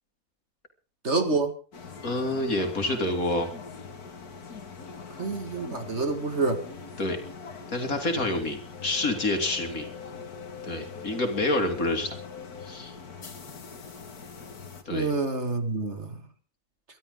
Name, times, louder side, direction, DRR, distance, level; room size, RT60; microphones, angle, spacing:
voice 1, 1.0-1.5 5.2-6.6 14.9-16.2, right 3 dB, 50° right, 7 dB, 2.4 m, -27 dB
sound 1, 1.7-14.8, left 5 dB, 90° left, 2.4 m, -42 dB
voice 2, 2.0-3.5 7.0-7.2 7.7-9.9 10.6-12.2 12.6-12.9 14.9-15.1, left 2 dB, 70° left, 5 dB, 3.3 m, -28 dB
23.5 x 12.5 x 3.9 m, 0.38 s
omnidirectional pair, 1.6 m